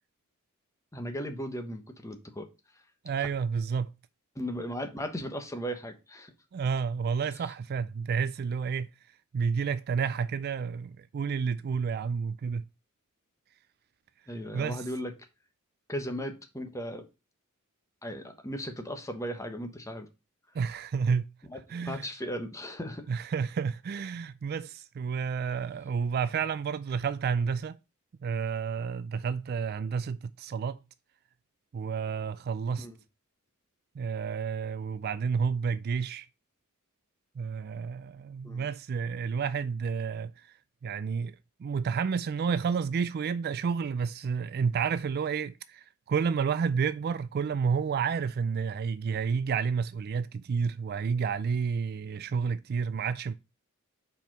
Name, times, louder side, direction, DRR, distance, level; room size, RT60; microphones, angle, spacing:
voice 1, 0.9-2.5 3.2-3.3 4.3-6.3 7.4-7.5 14.3-15.1 15.9-17.1 18.0-20.1 21.5-23.0 32.8-33.0 38.4-38.6, equal, 15° left, 1.2 m, -37 dB
voice 2, 3.0-3.9 6.5-8.9 9.3-12.6 14.5-14.8 20.5-21.3 21.7-22.1 23.1-27.8 28.2-30.8 31.7-32.9 34.0-36.3 37.4-40.5 40.8-53.3, right 6 dB, 45° right, 0.3 m, -30 dB
5.3 x 4.6 x 6.1 m
head